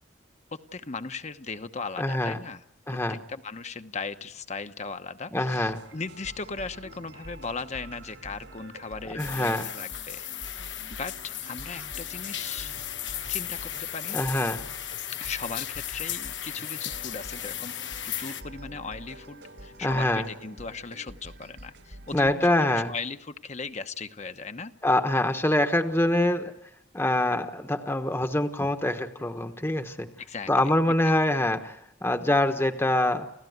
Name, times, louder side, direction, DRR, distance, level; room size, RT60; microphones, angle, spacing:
voice 1, 0.5-2.6 2.9-10.7 11.0-12.8 13.3-14.2 15.2-17.7 18.0-24.7 30.2-30.5 31.0-31.1, left 4 dB, 40° left, 9 dB, 1.0 m, -38 dB
voice 2, 2.0-2.4 2.9-3.2 5.3-5.9 9.1-9.7 14.1-14.6 19.8-20.3 22.1-22.9 24.8-26.5 26.9-30.1 30.5-33.3, left 1 dB, 15° left, 7 dB, 1.1 m, -25 dB
sound 1, 5.7-22.3, right 1 dB, 90° right, 5.8 m, -47 dB
sound 2, 9.2-18.4, left 12 dB, 70° left, 1.1 m, -35 dB
30.0 x 15.5 x 9.4 m, 0.82 s
head